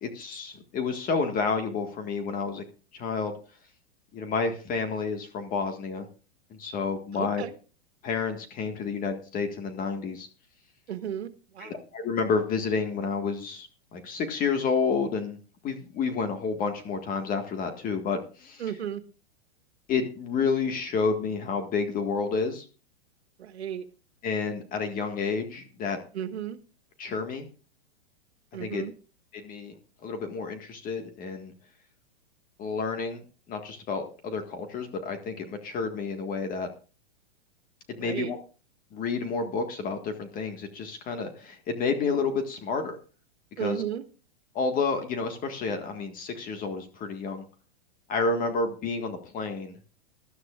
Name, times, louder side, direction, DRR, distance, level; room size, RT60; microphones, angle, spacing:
voice 1, 0.0-2.6 2.9-3.3 4.1-6.1 6.5-7.4 8.0-10.3 11.6-15.4 15.6-18.6 19.9-22.7 24.2-26.0 27.0-27.5 28.6-28.8 29.3-29.7 30.0-31.5 32.6-33.2 33.5-36.7 37.9-38.4 38.9-43.0 43.6-43.8 44.5-47.4 48.1-49.8, left 4 dB, 25° left, 6 dB, 1.7 m, -30 dB
voice 2, 7.1-7.5 10.9-11.8 18.6-19.0 23.4-23.9 26.1-26.6 28.5-28.9 38.0-38.3 43.6-44.0, right 9 dB, 85° right, 10 dB, 1.6 m, -34 dB
19.0 x 13.0 x 2.5 m, 0.36 s
hypercardioid pair, 135°, 32 cm